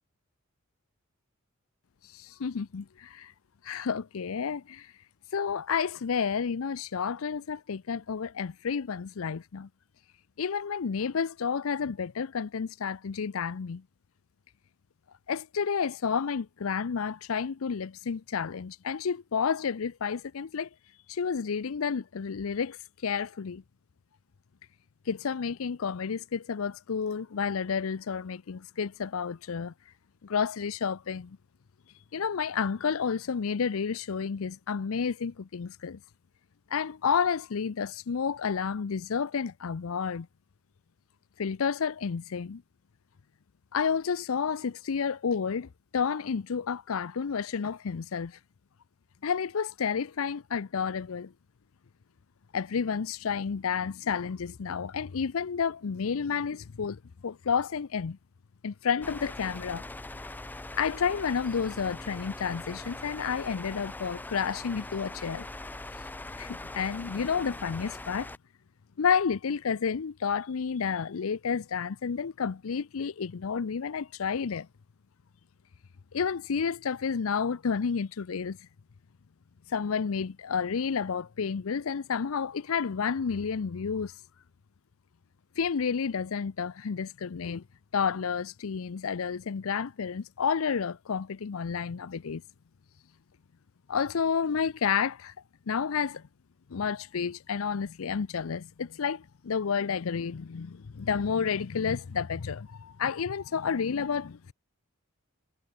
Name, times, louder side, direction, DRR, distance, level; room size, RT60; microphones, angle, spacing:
voice 1, 2.1-3.3 3.6-4.9 5.3-9.7 10.4-13.8 15.3-20.7 21.1-22.8 23.0-23.6 25.1-29.7 30.2-31.4 32.1-36.0 36.7-40.3 41.4-42.6 43.7-48.4 49.2-51.3 52.5-58.2 58.6-59.9 60.7-65.5 66.4-68.3 69.0-74.7 76.1-78.6 79.7-84.1 85.6-87.6 87.9-92.4 93.9-95.3 95.7-96.2 96.7-104.5, left 6 dB, 75° left, 0.5 m, -30 dB
sound 1, 59.0-68.4, left 2 dB, 10° left, 0.4 m, -42 dB
head